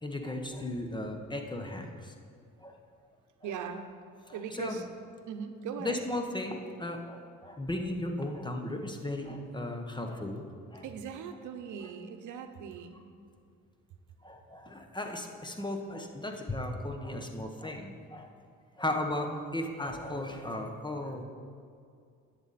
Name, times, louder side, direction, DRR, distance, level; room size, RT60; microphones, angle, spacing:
voice 1, 0.0-2.1 2.6-2.8 4.3-4.7 5.8-10.5 10.7-10.8 14.2-18.3 18.8-19.3 19.5-21.2, left 1 dB, 15° left, 4 dB, 1.1 m, -36 dB
voice 2, 3.4-3.9 4.3-4.9 5.3-6.0 10.8-13.0, right 7 dB, 80° right, 7 dB, 0.8 m, -39 dB
10.5 x 8.2 x 4.2 m, 2.3 s
cardioid pair, 90°, 30 cm